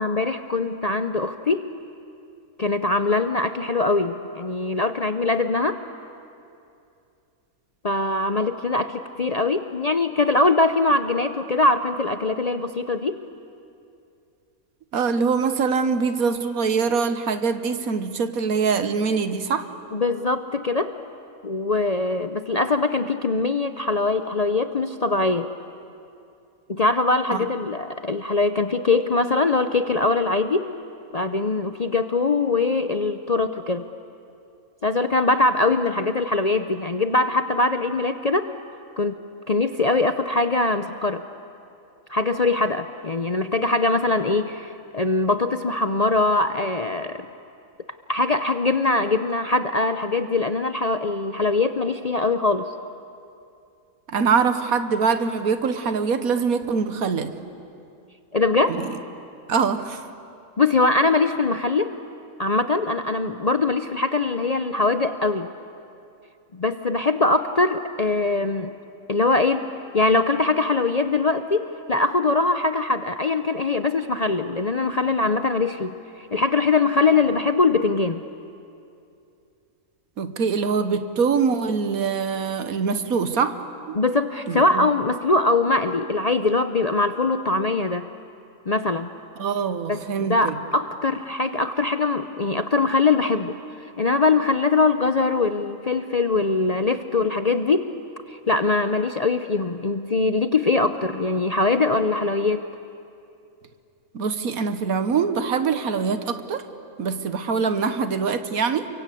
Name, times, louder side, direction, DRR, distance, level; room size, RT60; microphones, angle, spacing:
voice 1, 0.0-1.7 2.6-5.8 7.8-13.2 19.9-20.9 21.4-25.5 26.7-30.7 31.1-33.9 34.8-38.5 39.0-39.2 39.5-41.2 42.1-47.2 48.1-52.7 58.3-58.8 60.6-61.9 62.4-65.5 66.5-68.7 69.1-69.7 69.9-75.9 76.3-78.2 83.9-88.1 88.7-89.1 89.9-93.5 93.8-97.9 98.3-102.6, left 3 dB, 40° left, 9 dB, 0.6 m, -22 dB
voice 2, 14.9-19.7 27.3-27.5 54.1-57.4 58.7-58.9 59.5-60.1 80.2-83.6 83.9-84.0 84.5-84.9 89.4-90.6 104.1-106.6 107.0-108.9, right 5 dB, 80° right, 10 dB, 1.7 m, -23 dB
30.0 x 23.5 x 8.5 m, 2.6 s
omnidirectional pair, 1.5 m